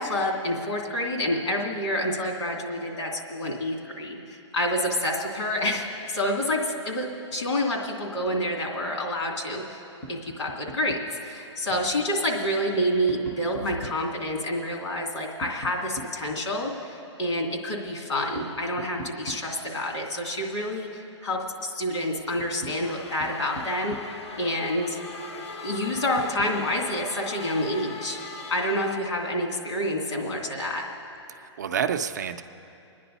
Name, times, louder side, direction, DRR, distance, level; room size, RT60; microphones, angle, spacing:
voice 1, 0.0-9.8 10.1-11.0 11.2-23.9 24.4-25.0 25.6-28.2 28.5-30.8, left 1 dB, 80° left, 0 dB, 2.6 m, -28 dB
Tap, 10.0-11.2 12.6-14.1 15.4-16.8 18.3-19.9 21.7-21.8 22.2-24.4 25.9-26.6, right 1 dB, 10° left, 0.5 m, -42 dB
sound 1, 22.8-29.0, left 4 dB, 65° left, 0.9 m, -40 dB
voice 2, 31.3-32.4, right 7 dB, 40° right, 8 dB, 0.4 m, -29 dB
24.5 x 10.0 x 4.1 m, 2.7 s
hypercardioid pair, 175°, 15 cm